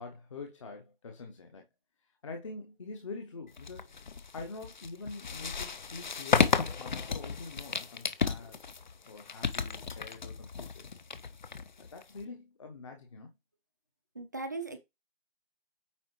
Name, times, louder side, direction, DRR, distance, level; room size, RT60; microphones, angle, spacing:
voice 1, 0.0-1.6 2.2-3.9 4.3-8.6 9.1-10.8 11.8-13.3, left 3 dB, 30° left, 1.0 m, -45 dB
sound 1, 3.6-12.2, left 5 dB, 50° left, 0.7 m, -33 dB
voice 2, 14.1-14.8, right 3 dB, 20° right, 0.5 m, -38 dB
8.7 x 4.7 x 3.1 m
figure-of-eight pair, 155°, 31 cm